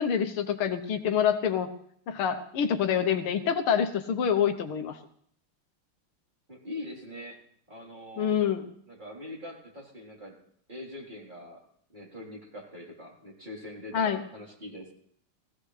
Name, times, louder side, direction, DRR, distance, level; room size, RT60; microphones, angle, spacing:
voice 1, 0.0-1.7 2.1-5.0 8.2-8.6 13.9-14.2, left 8 dB, 80° left, 8 dB, 1.9 m, -26 dB
voice 2, 6.5-7.4 7.7-8.3 8.9-10.4 10.7-11.6 11.9-14.9, left 1 dB, 20° right, -3 dB, 4.0 m, -43 dB
19.0 x 16.0 x 3.3 m, 0.64 s
omnidirectional pair, 2.4 m